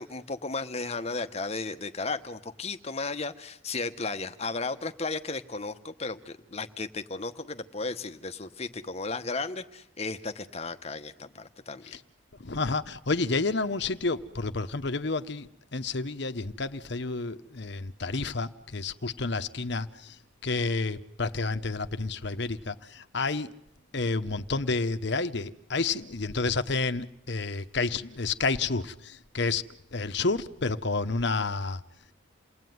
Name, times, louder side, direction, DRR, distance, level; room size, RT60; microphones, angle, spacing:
voice 1, 0.0-12.0, left 3 dB, 30° left, 1.1 m, -34 dB
voice 2, 12.4-20.1 20.4-23.5 23.9-29.6 29.9-31.8, left 3 dB, 55° left, 1.0 m, -30 dB
28.5 x 19.5 x 9.4 m
head